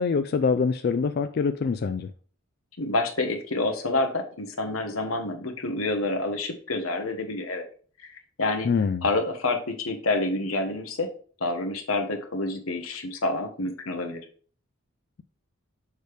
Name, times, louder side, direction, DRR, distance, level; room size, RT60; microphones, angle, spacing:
voice 1, 0.0-2.1 8.6-9.0, left 5 dB, 50° left, 0.3 m, -24 dB
voice 2, 2.8-7.6 8.0-8.7 9.0-11.1 11.4-14.2, left 2 dB, 90° left, 1.2 m, -28 dB
6.5 x 3.4 x 4.7 m
head